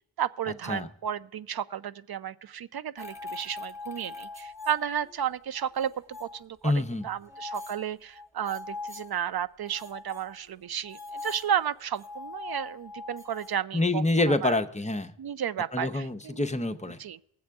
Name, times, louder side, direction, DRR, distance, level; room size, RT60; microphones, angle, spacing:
voice 1, 0.2-5.9 6.2-14.6 15.2-16.4 17.0-17.2, right 9 dB, 55° right, 16 dB, 0.5 m, -33 dB
sound 1, 3.0-5.3 5.6-6.4 7.0-9.1 9.6-13.6, left 3 dB, 5° right, 1.2 m, -42 dB
voice 2, 6.6-7.1 13.7-15.1 15.7-17.0, left 2 dB, 15° left, 7 dB, 0.6 m, -26 dB
20.0 x 7.6 x 3.5 m, 0.76 s
wide cardioid pair, 85°, 47 cm